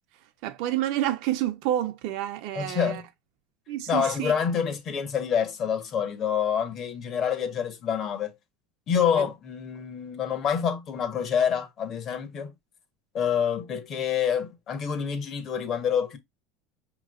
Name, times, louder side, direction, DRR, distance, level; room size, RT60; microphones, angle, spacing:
voice 1, 0.4-3.0 3.7-4.3 9.2-9.3, right 13 dB, 55° right, 0.8 m, -29 dB
voice 2, 2.5-3.0 3.9-8.3 8.9-12.5 13.1-16.2, left 7 dB, 30° left, 1.1 m, -27 dB
5.8 x 3.1 x 2.4 m
cardioid pair, 160°, 0 cm